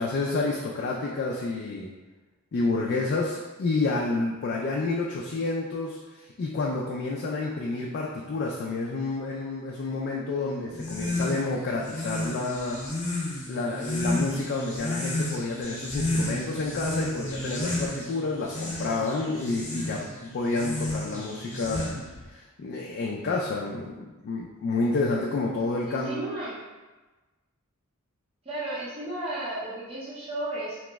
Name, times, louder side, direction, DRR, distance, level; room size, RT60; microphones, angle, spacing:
voice 1, 0.0-1.9 2.5-12.8 13.5-21.9 22.3-26.2, left 3 dB, 50° left, -2 dB, 0.3 m, -29 dB
sound 1, 10.7-22.2, left 1 dB, 35° left, 0.8 m, -32 dB
voice 2, 25.9-26.6 28.4-30.8, right 1 dB, 25° right, -9 dB, 0.6 m, -33 dB
2.9 x 2.0 x 3.4 m, 1.2 s
head